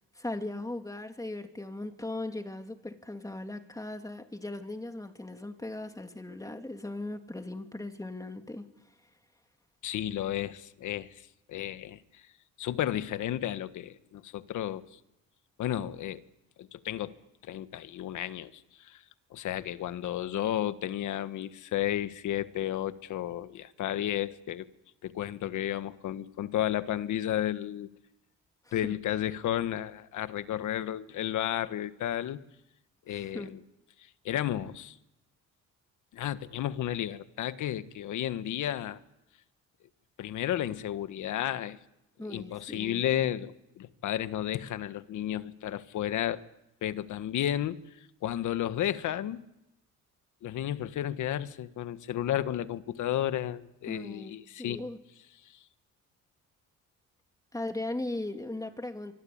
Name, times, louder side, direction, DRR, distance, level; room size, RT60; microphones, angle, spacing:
voice 1, 0.1-8.7 28.7-29.0 33.1-33.5 42.2-43.0 53.9-54.3 54.6-55.0 57.5-59.1, left 2 dB, 10° left, 2.9 m, -38 dB
voice 2, 9.8-11.1 11.5-12.0 12.6-14.8 15.6-16.2 16.6-17.1 17.4-18.6 18.9-19.0 19.3-24.6 25.0-27.9 28.7-32.4 33.1-33.6 34.2-35.0 36.1-39.0 40.2-41.8 42.3-46.4 46.8-47.8 48.2-49.4 50.4-54.8, left 12 dB, 75° left, 1.5 m, -32 dB
25.0 x 24.5 x 8.8 m
cardioid pair, 90°, 30 cm